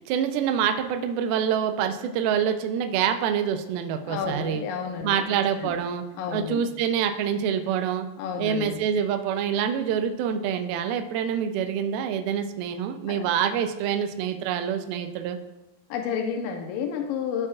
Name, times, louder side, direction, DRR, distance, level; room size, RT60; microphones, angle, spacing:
voice 1, 0.0-4.6 5.0-6.0 6.3-8.1 8.4-15.4, right 8 dB, 85° right, 6 dB, 2.1 m, -26 dB
voice 2, 4.1-5.3 5.6-5.8 6.2-6.6 8.2-8.8 13.1-13.2 15.9-17.5, left 7 dB, 85° left, 3 dB, 2.0 m, -30 dB
14.0 x 4.8 x 2.4 m, 1.0 s
omnidirectional pair, 4.9 m